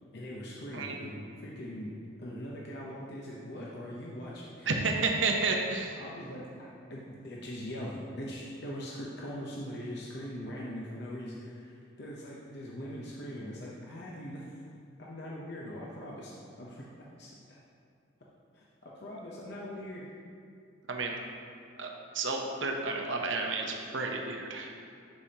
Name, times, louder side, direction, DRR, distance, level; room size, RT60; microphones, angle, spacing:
voice 1, 0.1-1.9 2.2-4.7 6.0-14.4 15.0-16.3 16.6-17.6 18.5-20.1, equal, 55° left, -5 dB, 0.8 m, -41 dB
voice 2, 4.7-5.9 20.9-21.2 21.8-21.9 22.1-24.7, right 3 dB, 65° right, 2 dB, 0.8 m, -31 dB
11.5 x 5.2 x 2.9 m, 2.4 s
head